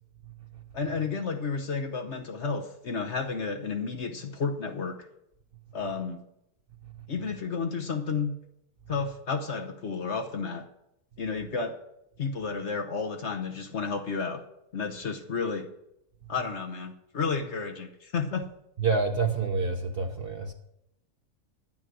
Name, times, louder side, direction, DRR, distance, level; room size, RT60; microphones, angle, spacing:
voice 1, 0.7-5.0 5.7-6.2 7.1-8.4 8.9-10.7 11.2-11.8 12.2-14.5 14.7-15.7 16.3-18.5, left 5 dB, 50° left, 1.1 m, -31 dB
voice 2, 18.8-20.5, right 4 dB, 45° right, 1.0 m, -27 dB
11.0 x 9.4 x 6.1 m
omnidirectional pair, 1.6 m